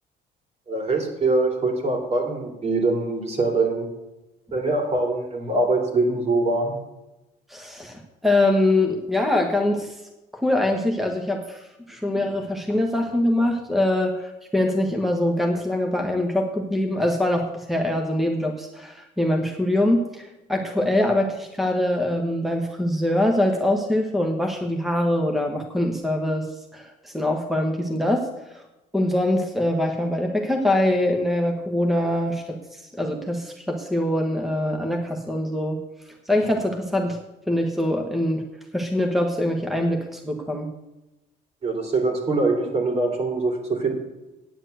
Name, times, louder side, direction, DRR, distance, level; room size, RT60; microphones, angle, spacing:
voice 1, 0.7-3.9 4.5-6.8 41.6-43.9, right 2 dB, 40° right, 2 dB, 3.0 m, -23 dB
voice 2, 7.5-9.9 10.3-26.5 26.7-28.6 28.9-35.8 36.2-37.2 37.5-38.4 38.7-40.7, left 1 dB, ahead, 2 dB, 1.3 m, -23 dB
9.4 x 7.3 x 7.9 m, 1.0 s
cardioid pair, 110°, 17 cm